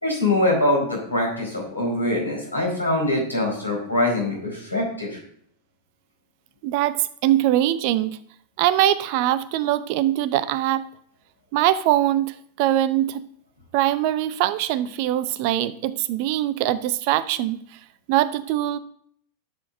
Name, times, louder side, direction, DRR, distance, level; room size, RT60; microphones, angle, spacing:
voice 1, 0.0-5.2, left 1 dB, 85° left, -3 dB, 4.1 m, -23 dB
voice 2, 6.6-8.2 8.6-10.8 11.5-13.2 13.7-17.6 18.1-18.8, right 13 dB, 45° right, 16 dB, 0.5 m, -22 dB
11.5 x 7.0 x 2.6 m, 0.63 s
figure-of-eight pair, 90°, 0 cm